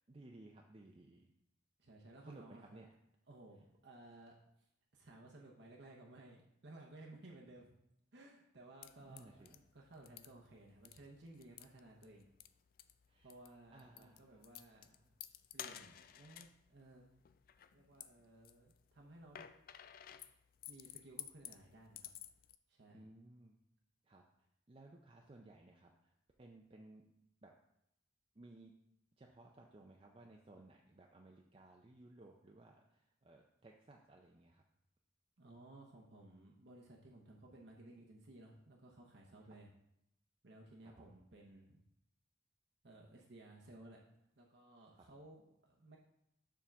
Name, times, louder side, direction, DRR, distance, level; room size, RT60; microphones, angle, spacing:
voice 1, 0.1-1.3 2.2-2.9 9.1-9.5 13.1-13.3 13.7-14.8 22.9-23.6 24.0-24.2 24.7-26.1 26.4-27.0 27.4-27.5 28.4-28.7 29.2-34.6 39.4-39.5 40.8-41.1, right 2 dB, 30° right, 1 dB, 0.5 m, -59 dB
voice 2, 1.8-2.8 3.3-7.7 8.1-12.3 13.2-14.9 15.5-17.1 17.7-19.5 20.7-22.1 22.7-23.1 35.4-39.7 40.4-41.8 42.8-44.0 44.4-46.0, right 2 dB, 60° right, -1 dB, 0.9 m, -58 dB
sound 1, 8.8-22.6, left 11 dB, 45° left, 0.3 m, -55 dB
6.9 x 3.7 x 5.9 m, 0.80 s
head